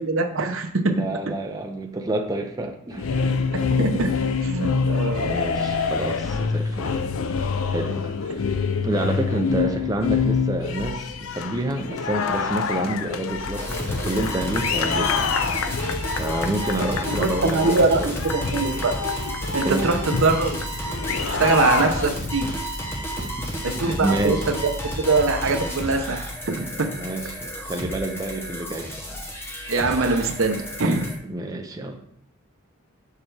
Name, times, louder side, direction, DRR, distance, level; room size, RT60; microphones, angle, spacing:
voice 1, 0.0-0.9 3.8-4.1 4.4-5.5 16.8-18.9 19.5-20.5 21.1-22.5 23.6-26.9 29.7-31.1, right 3 dB, 65° right, 6 dB, 0.7 m, -23 dB
voice 2, 0.9-3.4 5.3-7.0 7.7-8.5 8.8-15.3 15.7-15.9 16.2-18.2 19.6-19.9 22.4-22.5 23.2-24.5 26.9-28.9 31.2-32.0, right 1 dB, 15° right, 3 dB, 0.5 m, -28 dB
sound 1, 2.9-22.5, left 5 dB, 70° left, 0.5 m, -26 dB
sound 2, 13.5-31.2, equal, 10° left, 1.0 m, -31 dB
6.5 x 5.7 x 3.3 m, 0.70 s
head